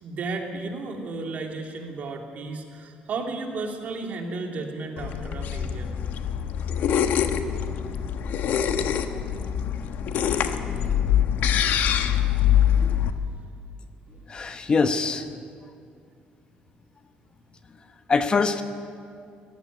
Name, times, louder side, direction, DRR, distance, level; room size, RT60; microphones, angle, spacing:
voice 1, 0.0-5.9 10.8-10.9, right 3 dB, 50° right, 2 dB, 2.8 m, -33 dB
sound 1, 5.0-13.1, left 9 dB, 70° left, 1.2 m, -24 dB
voice 2, 14.3-15.2 18.1-18.6, left 4 dB, 30° left, 8 dB, 1.0 m, -23 dB
18.0 x 15.0 x 9.8 m, 2.3 s
cardioid pair, 140°, 3 cm